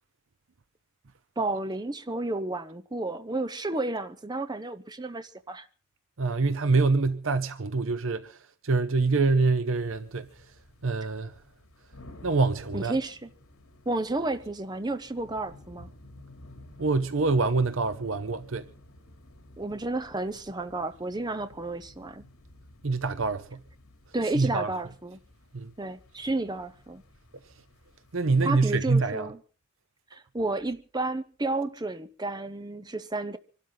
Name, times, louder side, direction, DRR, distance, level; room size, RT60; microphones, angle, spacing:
voice 1, 1.4-5.7 12.7-13.3 13.9-15.9 19.6-22.2 24.1-25.2 25.8-27.0 28.4-29.4 30.1-33.4, right 2 dB, 20° right, 0.7 m, -31 dB
voice 2, 6.2-8.4 8.6-10.3 10.8-11.3 12.2-12.9 16.8-18.7 22.8-23.6 24.3-24.7 25.5-25.7 28.1-29.3, right 3 dB, 65° right, 0.7 m, -25 dB
sound 1, 9.7-28.2, left 1 dB, 70° left, 3.4 m, -53 dB
25.0 x 12.5 x 4.0 m
head